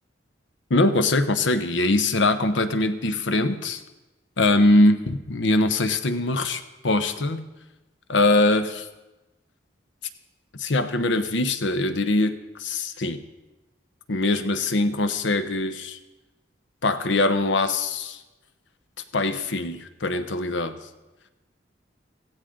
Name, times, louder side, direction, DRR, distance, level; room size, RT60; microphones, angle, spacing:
voice 1, 0.7-3.8 4.4-7.5 8.1-8.9 10.6-13.2 14.1-16.0 16.8-18.2 19.1-20.8, left 2 dB, 70° left, 9 dB, 1.0 m, -22 dB
16.5 x 15.5 x 3.8 m, 1.1 s
head